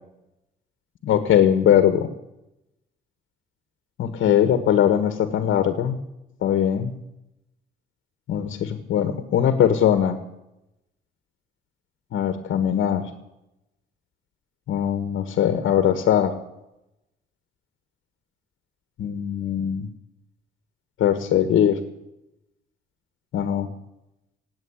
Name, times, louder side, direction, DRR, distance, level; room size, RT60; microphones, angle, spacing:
voice 1, 1.0-2.1 4.0-6.0 6.4-6.9 8.3-10.2 12.1-13.0 14.7-16.3 19.0-19.9 21.0-21.8 23.3-23.7, left 9 dB, 75° left, 10 dB, 1.7 m, -20 dB
18.0 x 8.8 x 8.3 m, 0.90 s
cardioid pair, 90°, 20 cm